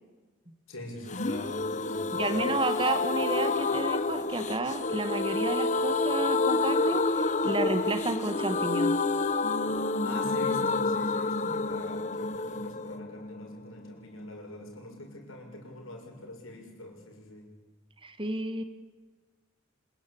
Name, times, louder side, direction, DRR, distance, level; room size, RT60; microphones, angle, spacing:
voice 1, 0.7-2.4 10.0-17.5, left 1 dB, 75° left, 2 dB, 6.6 m, -44 dB
sound 1, 1.1-14.7 15.0-15.1 15.3-15.4, left 3 dB, 35° left, 0.9 m, -29 dB
voice 2, 2.1-8.9 18.0-18.6, right 2 dB, 25° right, 9 dB, 1.5 m, -31 dB
25.5 x 21.5 x 8.7 m, 1.3 s
head